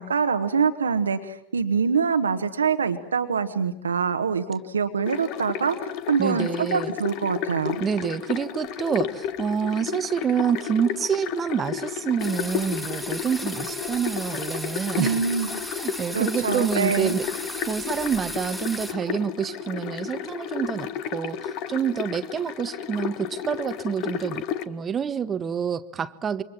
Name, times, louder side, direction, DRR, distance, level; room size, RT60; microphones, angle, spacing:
voice 1, 0.0-5.8 6.1-7.8 14.9-15.6 16.1-17.2, right 6 dB, 70° right, 8 dB, 1.4 m, -24 dB
sound 1, 5.1-24.6, left 9 dB, 40° left, 1.4 m, -32 dB
voice 2, 6.2-6.9 7.8-15.2 15.8-26.4, right 7 dB, 20° right, 13 dB, 1.0 m, -27 dB
sound 2, 12.2-18.9, equal, 5° left, 2.6 m, -36 dB
28.5 x 24.5 x 7.5 m, 0.77 s
figure-of-eight pair, 90°, 0 cm